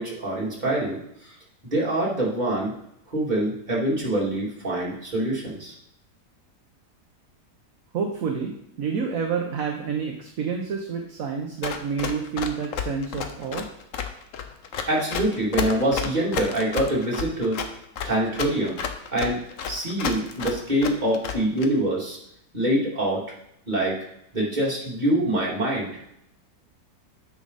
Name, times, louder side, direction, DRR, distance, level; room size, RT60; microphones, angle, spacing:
voice 1, 0.0-1.3 1.6-2.7 3.1-5.7 14.9-17.6 18.0-18.8 19.1-19.4 19.7-22.2 22.5-23.2 23.7-24.0 24.3-25.9, right 1 dB, 25° right, -5 dB, 2.8 m, -25 dB
voice 2, 7.9-13.7, right 6 dB, 60° right, 2 dB, 1.3 m, -29 dB
Run, 11.6-21.7, left 7 dB, 55° left, 1.1 m, -31 dB
9.5 x 6.2 x 4.1 m, 0.76 s
omnidirectional pair, 1.8 m